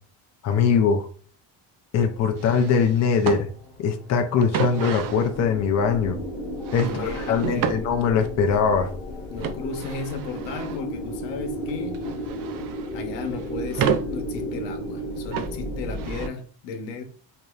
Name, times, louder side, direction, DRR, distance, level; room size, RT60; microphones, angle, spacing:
voice 1, 0.4-1.1 1.9-3.5 3.8-6.2 6.7-8.9, left 6 dB, 40° left, 0.5 m, -22 dB
sound 1, 2.0-16.3, equal, 20° left, 1.8 m, -34 dB
sound 2, 2.4-3.4 4.4-5.3 6.6-7.8 9.4-10.8 11.7-12.9 13.2-14.1 15.3-15.5 15.9-16.3, right 8 dB, 50° right, 0.5 m, -30 dB
voice 2, 6.8-7.9 9.3-12.0 12.9-17.0, left 4 dB, 85° left, 1.0 m, -34 dB
4.8 x 2.8 x 2.4 m
cardioid pair, 145°, 42 cm